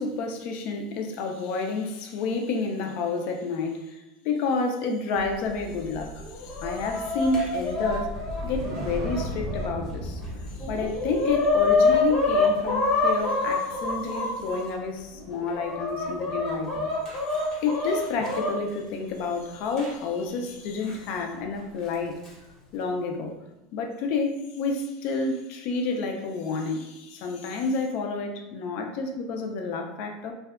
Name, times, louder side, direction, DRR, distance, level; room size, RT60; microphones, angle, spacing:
voice 1, 0.0-4.0 4.2-8.1 8.4-10.2 10.7-16.9 17.6-22.1 22.7-23.3 23.7-30.3, left 4 dB, 50° left, 3 dB, 0.4 m, -29 dB
sound 1, 5.1-15.5 15.9-16.2, equal, 75° right, 0.4 m, -38 dB
Chicken rooster, 6.2-9.7 10.2-10.3 10.6-14.6 15.3-18.5 19.8-19.9 20.9-21.0 21.9-22.3, left 3 dB, 25° left, 0.7 m, -26 dB
2.6 x 2.2 x 2.3 m, 0.96 s
supercardioid pair, 145°, 3 cm